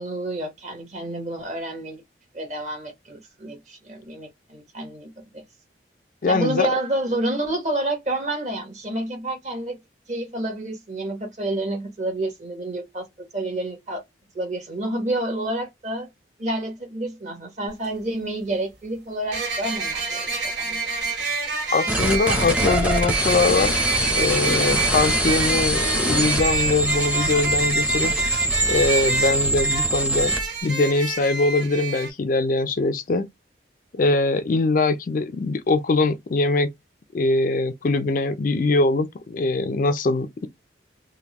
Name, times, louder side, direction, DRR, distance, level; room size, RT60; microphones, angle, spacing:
voice 1, 0.0-2.0 2.3-5.4 6.3-9.8 10.1-13.1 13.3-14.0 14.3-16.1 16.4-20.8, right 1 dB, 40° right, 1.2 m, -29 dB
voice 2, 6.2-6.7 21.7-23.7 24.2-28.1 28.7-30.3 30.6-33.3 33.9-36.7 37.1-40.5, left 3 dB, 45° left, 0.4 m, -22 dB
sound 1, 17.7-17.8 19.3-32.1, right 4 dB, 85° right, 1.6 m, -28 dB
sound 2, 21.9-30.4, right 1 dB, 5° right, 0.7 m, -23 dB
3.5 x 2.2 x 2.9 m
head